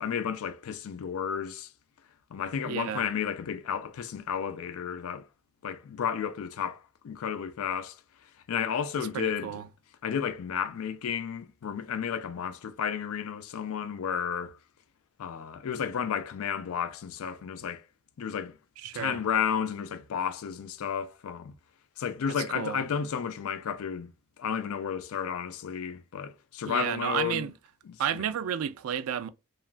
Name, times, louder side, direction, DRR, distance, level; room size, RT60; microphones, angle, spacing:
voice 1, 0.0-1.7 2.3-5.3 5.6-8.0 8.5-9.6 10.0-14.6 15.2-17.8 18.2-18.6 18.9-21.6 22.0-24.1 24.4-27.5 27.9-28.0, left 7 dB, 75° left, 0.4 m, -32 dB
voice 2, 2.6-3.1 9.0-9.7 18.8-19.2 22.3-22.8 26.7-27.5 28.0-29.3, right 9 dB, 75° right, 0.3 m, -32 dB
2.9 x 2.3 x 2.4 m
head